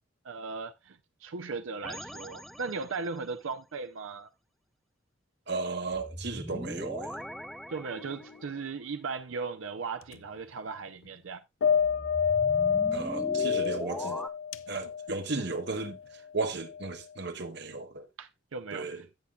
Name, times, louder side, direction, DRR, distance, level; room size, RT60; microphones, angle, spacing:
voice 1, 0.2-4.3 7.7-11.4 18.2-18.9, right 4 dB, 85° right, 0.6 m, -37 dB
sound 1, 1.8-3.2 5.9-8.6 11.8-14.3, equal, ahead, 0.5 m, -40 dB
voice 2, 5.5-7.2 12.9-14.2 14.7-18.1 18.7-19.0, right 3 dB, 60° right, 1.2 m, -35 dB
sound 2, 8.0-8.4 10.0-10.2 11.6-16.0 16.7-16.9, left 7 dB, 80° left, 0.5 m, -29 dB
16.5 x 5.8 x 2.3 m
head